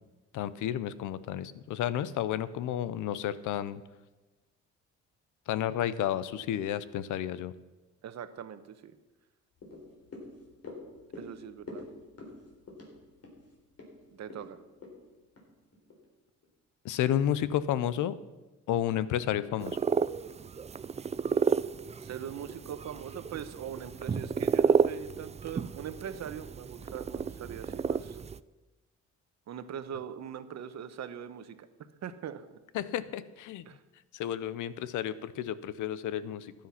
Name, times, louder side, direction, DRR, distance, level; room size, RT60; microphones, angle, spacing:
voice 1, 0.3-3.8 5.5-7.5 16.8-18.1 18.7-19.8 32.7-33.6 34.1-36.5, left 11 dB, 85° left, 16 dB, 0.8 m, -31 dB
voice 2, 8.0-9.0 11.2-11.8 14.1-14.6 22.0-28.2 29.5-31.7 32.0-32.6 33.6-33.8, right 8 dB, 60° right, 11 dB, 1.2 m, -41 dB
sound 1, 9.6-16.1 16.4-16.5, left 2 dB, 55° left, 4.1 m, -48 dB
sound 2, 19.6-28.4, right 6 dB, 20° right, 0.4 m, -31 dB
14.0 x 10.5 x 5.8 m, 1.1 s
cardioid pair, 90°, 30 cm